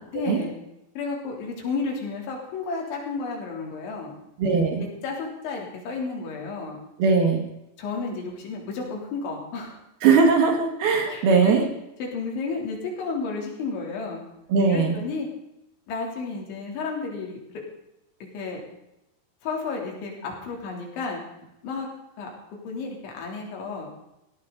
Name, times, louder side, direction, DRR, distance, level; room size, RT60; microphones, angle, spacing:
voice 1, 0.1-0.5 1.0-4.1 4.8-6.8 7.8-9.8 11.1-11.7 12.0-14.2 14.7-15.3 15.9-17.4 18.3-18.6 19.4-21.2 21.6-21.9 22.2-23.9, left 4 dB, 75° left, 0 dB, 5.7 m, -32 dB
voice 2, 4.4-4.8 7.0-7.4 10.0-11.6 14.5-15.0, right 5 dB, 60° right, 3 dB, 3.5 m, -20 dB
18.5 x 16.5 x 4.0 m, 0.88 s
omnidirectional pair, 5.4 m